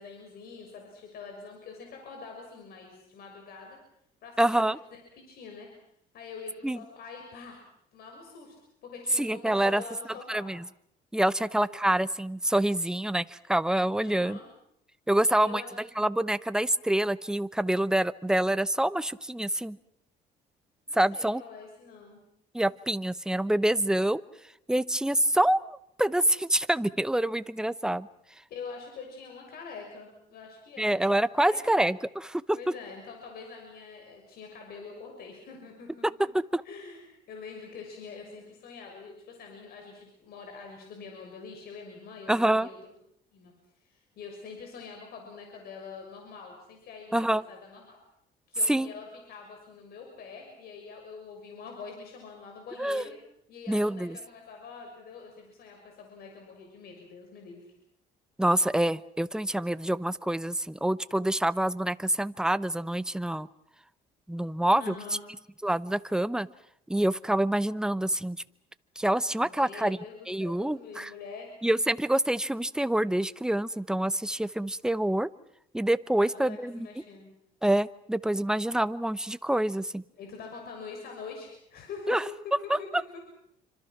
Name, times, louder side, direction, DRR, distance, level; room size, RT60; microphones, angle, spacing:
voice 1, 0.0-3.8 4.2-5.0 5.3-5.7 6.1-7.6 7.9-8.6 8.8-10.5 11.3-11.8 14.0-14.4 15.2-15.7 20.9-22.2 28.5-31.1 31.4-31.9 32.5-36.3 36.6-42.8 43.3-43.5 43.8-48.0 48.5-53.1 53.5-57.7 64.8-65.2 69.4-71.5 76.2-77.3 80.2-82.2 82.4-83.2, left 5 dB, 65° left, 2 dB, 6.5 m, -45 dB
voice 2, 4.4-4.8 6.6-6.8 9.2-9.8 10.3-10.6 11.1-14.4 15.1-15.6 16.0-19.8 20.9-21.4 22.5-24.2 24.7-28.1 30.8-32.6 36.3-36.6 42.3-42.7 47.1-47.4 48.7-48.9 52.8-53.0 53.7-54.2 58.4-63.5 64.3-64.9 65.6-66.5 66.9-68.4 69.0-70.0 70.3-71.1 71.6-75.3 75.7-76.9 77.6-80.0 82.1-82.2 82.7-82.8, right 1 dB, 5° right, 14 dB, 0.9 m, -26 dB
28.0 x 26.0 x 6.1 m, 0.73 s
cardioid pair, 110°, 17 cm